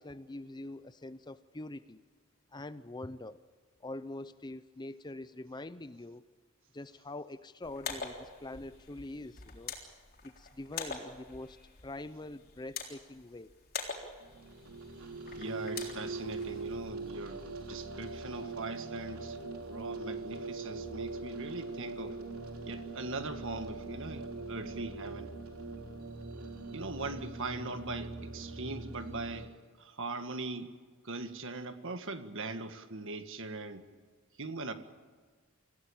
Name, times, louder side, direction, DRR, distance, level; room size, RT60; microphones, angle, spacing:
voice 1, 0.0-2.0 2.5-3.4 3.8-6.2 6.7-9.7 10.2-13.5, left 2 dB, 20° left, 14 dB, 0.6 m, -44 dB
sound 1, 7.6-16.6, left 5 dB, 45° left, 3.7 m, -45 dB
sound 2, 14.2-29.5, right 3 dB, 80° right, 3.4 m, -42 dB
voice 2, 15.3-22.2 22.6-25.3 26.7-29.5 29.8-30.7 31.0-33.8 34.4-34.7, right 3 dB, 60° right, 8 dB, 1.7 m, -40 dB
26.0 x 16.5 x 8.8 m, 1.5 s
head